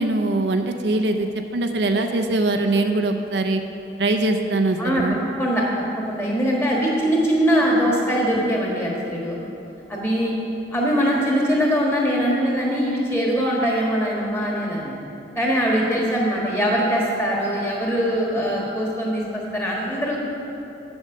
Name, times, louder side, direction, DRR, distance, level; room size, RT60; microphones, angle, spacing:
voice 1, 0.0-3.6 4.0-5.1, right 2 dB, 70° right, 5 dB, 0.6 m, -22 dB
voice 2, 4.8-9.4 9.9-10.3 10.7-14.9 15.3-20.2, equal, 15° left, -3 dB, 1.5 m, -22 dB
7.9 x 7.2 x 6.5 m, 2.9 s
head